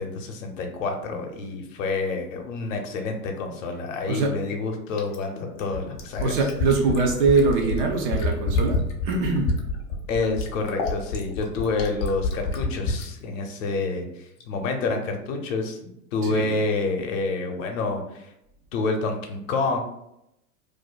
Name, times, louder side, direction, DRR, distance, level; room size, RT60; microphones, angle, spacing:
voice 1, 0.0-6.4 10.1-18.3 18.7-19.8, left 3 dB, 60° left, 3 dB, 0.8 m, -28 dB
Fill (with liquid), 5.0-13.1 14.4-14.5, left 3 dB, 25° left, 0.4 m, -27 dB
voice 2, 6.2-9.5 16.2-16.6, right 4 dB, 35° right, 1 dB, 0.4 m, -23 dB
2.5 x 2.2 x 4.0 m, 0.82 s
hypercardioid pair, 105°, 45 cm